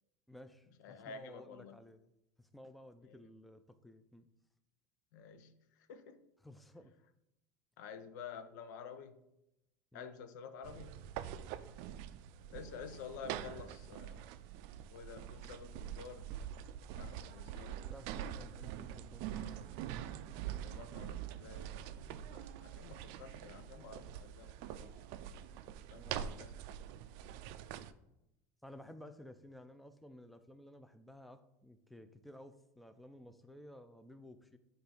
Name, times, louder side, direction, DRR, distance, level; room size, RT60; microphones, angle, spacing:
voice 1, 0.3-2.0 2.4-4.3 6.4-6.9 9.9-10.1 17.8-19.7 25.9-26.4 28.6-34.6, left 1 dB, ahead, 9 dB, 0.5 m, -55 dB
voice 2, 0.8-1.8 3.1-3.2 5.1-5.5 5.9-6.2 7.8-9.2 9.9-11.1 12.5-14.3 14.9-16.3 17.0-17.9 20.6-25.2 25.9-26.5, left 6 dB, 80° left, 9 dB, 0.6 m, -50 dB
sound 1, 10.6-27.9, right 10 dB, 65° right, 0.4 m, -45 dB
7.7 x 2.6 x 4.9 m, 0.87 s
supercardioid pair, 105°, 10 cm